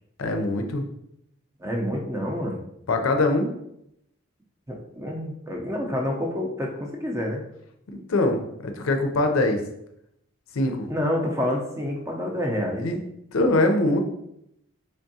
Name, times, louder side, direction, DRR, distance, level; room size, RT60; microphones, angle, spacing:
voice 1, 0.2-0.9 2.9-3.5 7.9-9.6 10.5-10.9 12.8-13.0 13.3-14.0, left 2 dB, 75° left, 5 dB, 0.5 m, -23 dB
voice 2, 1.6-2.6 4.7-7.4 10.9-12.8, left 1 dB, 15° right, -1 dB, 0.5 m, -28 dB
3.5 x 3.4 x 2.7 m, 0.77 s
head